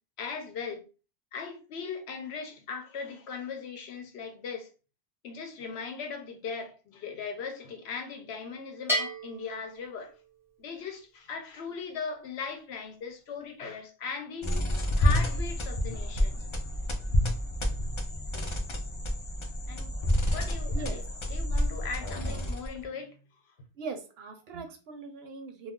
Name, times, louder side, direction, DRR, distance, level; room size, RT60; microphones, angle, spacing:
voice 1, 0.2-0.8 1.3-4.7 5.2-10.1 10.6-14.5 15.0-16.4 19.7-19.9 20.3-21.0 21.3-23.2 23.5-23.6, left 5 dB, 70° left, 0.9 m, -38 dB
Bell, 8.9-10.6, equal, 5° right, 0.6 m, -33 dB
sound 1, 14.4-22.8, left 1 dB, 50° left, 0.3 m, -29 dB
voice 2, 20.7-21.1 23.8-25.7, right 4 dB, 65° right, 0.8 m, -40 dB
2.4 x 2.3 x 3.6 m
omnidirectional pair, 1.2 m